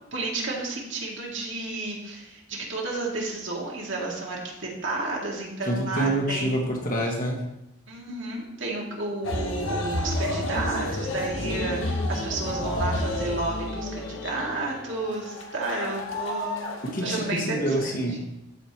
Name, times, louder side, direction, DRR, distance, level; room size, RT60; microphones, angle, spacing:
voice 1, 0.1-6.6 7.9-16.6 17.0-17.9, right 2 dB, 75° right, -2 dB, 2.0 m, -31 dB
voice 2, 5.6-7.4 16.8-18.2, right 1 dB, 45° left, 0 dB, 1.5 m, -27 dB
sound 1, 9.2-17.3, left 1 dB, 90° left, 1.2 m, -30 dB
13.5 x 5.1 x 3.0 m, 0.85 s
head